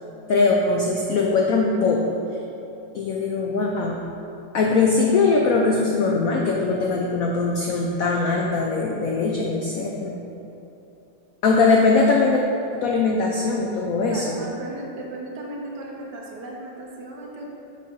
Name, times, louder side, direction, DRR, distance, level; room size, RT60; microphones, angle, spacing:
voice 1, 0.3-2.2 2.9-4.0 4.5-10.1 11.4-12.4 12.7-14.4, left 4 dB, 80° left, 0 dB, 0.7 m, -21 dB
voice 2, 14.1-17.6, right 1 dB, 65° right, -1 dB, 1.4 m, -36 dB
6.3 x 4.3 x 5.0 m, 2.9 s
omnidirectional pair, 2.1 m